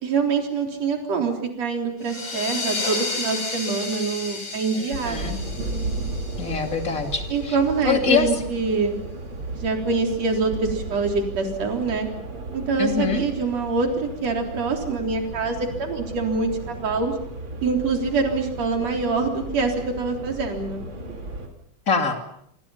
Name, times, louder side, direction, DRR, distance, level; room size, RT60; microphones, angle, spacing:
voice 1, 0.0-5.4 7.3-9.0 9.5-12.1 12.5-17.1 17.6-20.8, right 4 dB, 55° right, 3 dB, 4.8 m, -25 dB
sound 1, 2.0-7.3, left 3 dB, 55° left, 6.7 m, -32 dB
voice 2, 4.8-5.4 6.4-7.6 7.8-8.3 12.8-13.2 21.9-22.2, left 6 dB, 25° left, 5 dB, 2.9 m, -24 dB
sound 2, 4.9-21.5, right 2 dB, 40° right, 3.8 m, -34 dB
28.0 x 25.5 x 5.7 m, 0.69 s
omnidirectional pair, 3.6 m